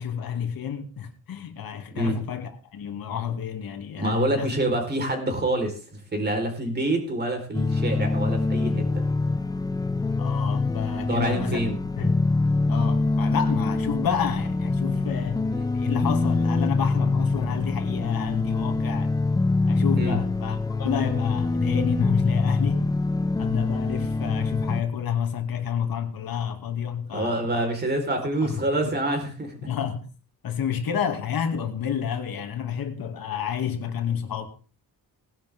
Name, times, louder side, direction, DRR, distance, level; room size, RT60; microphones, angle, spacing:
voice 1, 0.0-4.5 10.2-11.6 12.0-12.2 12.7-15.5 15.7-19.2 19.7-22.9 23.4-27.6 28.4-29.0 29.6-30.1 30.4-34.5, left 8 dB, 75° left, 2.5 m, -30 dB
voice 2, 4.0-9.1 10.9-11.8 15.5-15.7 19.9-20.2 27.1-29.5, right 1 dB, 25° right, 4.4 m, -27 dB
sound 1, 7.5-24.8, left 3 dB, 10° left, 0.6 m, -25 dB
19.5 x 11.5 x 3.6 m
wide cardioid pair, 160°, 36 cm